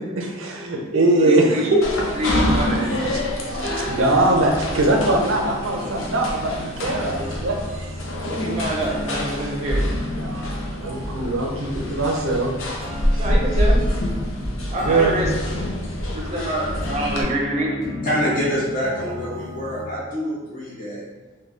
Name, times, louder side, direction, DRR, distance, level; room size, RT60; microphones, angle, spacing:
voice 1, 0.0-1.8 3.1-3.2 3.5-7.9 9.4-9.5 10.2-12.5 13.1-13.2 14.9-15.3, right 2 dB, 80° right, 2 dB, 0.6 m, -22 dB
voice 2, 1.1-1.6 2.2-2.9 8.3-9.8 13.2-13.9 14.7-15.3 16.1-17.8, right 1 dB, 35° right, -2 dB, 0.6 m, -26 dB
sound 1, 1.8-17.2, left 1 dB, 80° left, 0.6 m, -26 dB
sound 2, 3.7-19.8, left 1 dB, ahead, 0.9 m, -35 dB
voice 3, 18.0-21.0, equal, 45° left, -7 dB, 1.1 m, -26 dB
3.7 x 2.2 x 3.3 m, 1.2 s
head